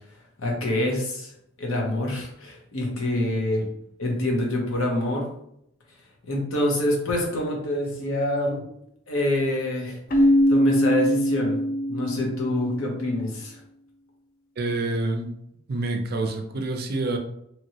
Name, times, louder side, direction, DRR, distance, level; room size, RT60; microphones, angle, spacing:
voice 1, 0.4-1.3 1.6-3.7 4.0-5.3 6.3-8.6 9.1-10.0 10.5-11.6 11.9-13.6, left 1 dB, 80° left, 0 dB, 0.8 m, -26 dB
Keyboard (musical), 10.1-12.7, equal, 40° left, 0.4 m, -21 dB
voice 2, 14.6-15.3 15.7-17.2, right 2 dB, 45° right, 4 dB, 0.4 m, -27 dB
2.9 x 2.8 x 2.8 m, 0.74 s
head